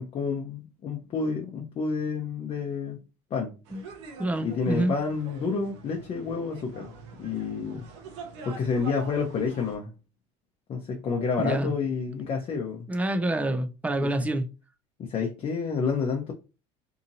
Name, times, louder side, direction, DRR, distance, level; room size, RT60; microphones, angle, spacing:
voice 1, 0.0-3.0 3.3-3.6 4.4-6.9 7.2-7.9 8.4-9.9 10.7-12.9 14.0-14.3 15.0-16.3, left 5 dB, 40° left, 0.7 m, -29 dB
sound 1, 3.7-9.8, right 4 dB, 85° right, 0.7 m, -44 dB
voice 2, 4.2-4.9 11.4-11.7 12.9-14.5, right 1 dB, 10° right, 0.4 m, -27 dB
2.8 x 2.5 x 2.7 m
supercardioid pair, 100°, 15 cm